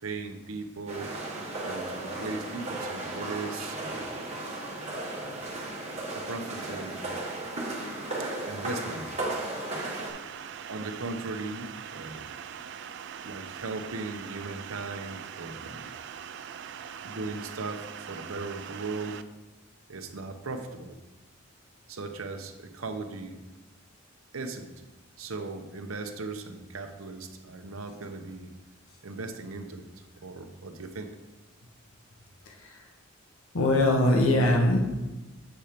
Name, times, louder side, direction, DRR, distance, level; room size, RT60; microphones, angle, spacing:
voice 1, 0.0-1.1 1.6-4.1 5.2-5.4 6.1-7.2 8.3-9.1 10.7-12.3 13.2-15.9 17.0-19.2 19.9-21.0 21.9-23.4 24.3-24.7 25.2-28.5 29.0-31.1, right 3 dB, 85° right, 6 dB, 0.8 m, -38 dB
sound 1, 0.9-10.1, right 2 dB, 30° right, 1.5 m, -35 dB
sound 2, 9.8-19.2, right 8 dB, 55° right, 0.3 m, -42 dB
voice 2, 32.5-32.8 33.5-34.8, left 1 dB, 90° left, 1 dB, 1.0 m, -22 dB
8.0 x 4.4 x 5.0 m, 1.1 s
head